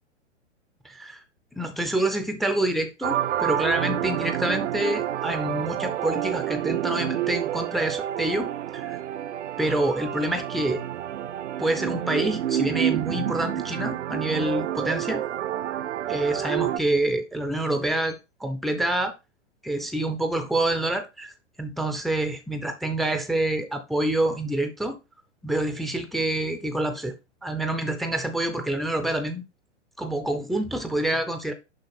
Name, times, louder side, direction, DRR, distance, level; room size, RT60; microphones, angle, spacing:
voice 1, 0.8-1.2 1.5-9.0 9.6-10.8 11.6-15.2 16.1-19.1 19.6-25.0 25.4-27.1 27.4-29.4 30.0-31.5, right 1 dB, ahead, 0.4 m, -27 dB
sound 1, 3.0-16.8, right 11 dB, 70° right, 0.6 m, -28 dB
6.6 x 5.6 x 4.2 m
hypercardioid pair, 115°, 37 cm